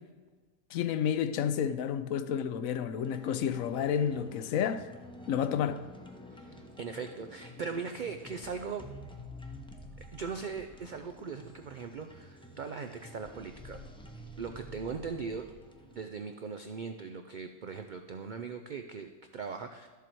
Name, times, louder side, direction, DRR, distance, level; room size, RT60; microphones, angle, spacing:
voice 1, 0.7-4.9 5.3-5.8, left 8 dB, 75° left, 1.0 m, -30 dB
sound 1, 3.0-16.1, left 1 dB, 5° left, 0.5 m, -49 dB
voice 2, 6.3-8.9 10.1-13.8 14.4-15.5 15.8-19.9, right 5 dB, 75° right, 0.4 m, -39 dB
12.0 x 7.0 x 4.5 m
omnidirectional pair, 1.5 m